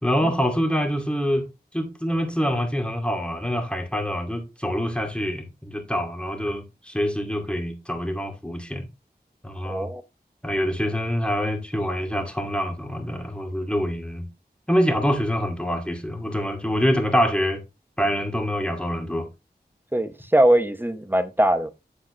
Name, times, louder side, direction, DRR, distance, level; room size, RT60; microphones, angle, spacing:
voice 1, 0.0-1.5 1.7-8.9 9.4-9.9 10.4-14.3 14.7-17.6 18.0-19.3, equal, 5° left, 2.4 m, -25 dB
voice 2, 9.6-10.0 19.9-21.7, right 1 dB, 10° right, 1.0 m, -21 dB
8.6 x 7.4 x 3.2 m
wide cardioid pair, 55°, 17 cm